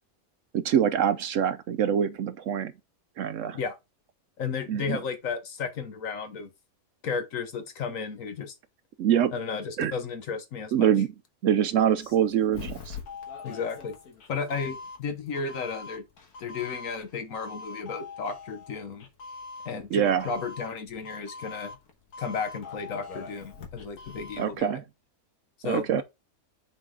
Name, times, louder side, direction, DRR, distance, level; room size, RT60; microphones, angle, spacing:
voice 1, 0.5-2.7 3.2-3.6 4.7-5.0 9.0-9.3 9.8-9.9 10.7-11.1 11.4-13.0 19.9-20.3 24.4-24.8 25.6-26.0, right 9 dB, 65° right, 0.8 m, -24 dB
voice 2, 4.4-6.5 7.0-8.5 9.3-10.9 13.4-14.0 14.3-16.0 16.4-19.1 19.6-21.7 22.2-24.8 25.6-26.0, left 5 dB, 65° left, 1.3 m, -33 dB
Doorbell, 11.8-24.6, left 4 dB, 85° left, 1.8 m, -43 dB
8.0 x 4.1 x 3.7 m
omnidirectional pair, 1.6 m